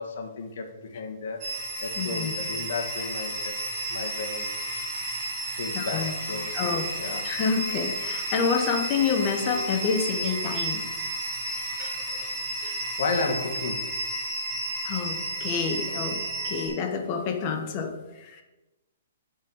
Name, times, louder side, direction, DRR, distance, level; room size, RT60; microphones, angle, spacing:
voice 1, 0.0-1.4 1.8-3.6 3.9-4.5 5.6-7.3 12.6-13.9, left 4 dB, 60° left, 3 dB, 1.6 m, -33 dB
sound 1, 1.4-16.7, right 1 dB, 25° right, 2.5 m, -32 dB
voice 2, 2.0-2.3 5.7-6.1 6.5-10.9 11.8-12.3 12.6-12.7 14.8-18.4, left 6 dB, 30° left, 5 dB, 1.1 m, -28 dB
7.4 x 5.5 x 6.3 m, 1.1 s
hypercardioid pair, 165°, 0 cm